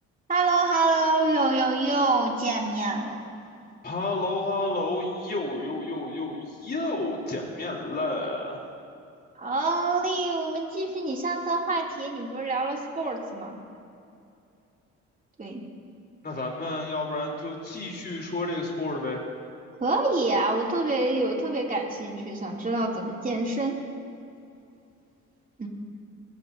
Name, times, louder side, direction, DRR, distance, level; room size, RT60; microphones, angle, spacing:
voice 1, 0.3-3.2 9.4-13.6 15.4-15.6 19.8-23.8 25.6-25.7, right 3 dB, 25° right, -2 dB, 2.8 m, -26 dB
voice 2, 3.8-8.6 16.2-19.2, left 2 dB, 30° left, -1 dB, 3.6 m, -30 dB
23.0 x 15.5 x 2.8 m, 2.6 s
cardioid pair, 90°, 30 cm